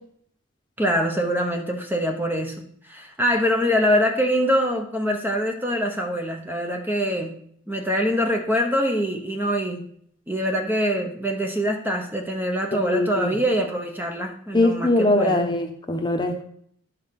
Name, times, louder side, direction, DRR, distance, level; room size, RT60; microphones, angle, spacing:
voice 1, 0.8-2.6 2.8-7.4 7.7-9.9 10.3-15.4, equal, 10° right, 3 dB, 0.9 m, -24 dB
voice 2, 12.7-13.3 14.5-16.4, left 1 dB, 20° left, 4 dB, 1.0 m, -22 dB
11.0 x 5.7 x 5.8 m, 0.64 s
head